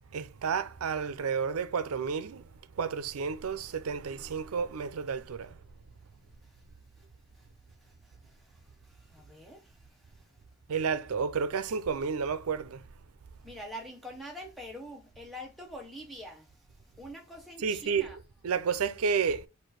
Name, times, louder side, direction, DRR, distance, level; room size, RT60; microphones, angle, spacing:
voice 1, 0.1-2.4 2.8-5.5 10.7-12.8 17.6-19.5, right 6 dB, 85° right, 0.5 m, -31 dB
voice 2, 7.8-10.2 13.4-16.5 17.0-18.2, equal, ahead, 0.7 m, -46 dB
4.3 x 2.5 x 4.6 m
head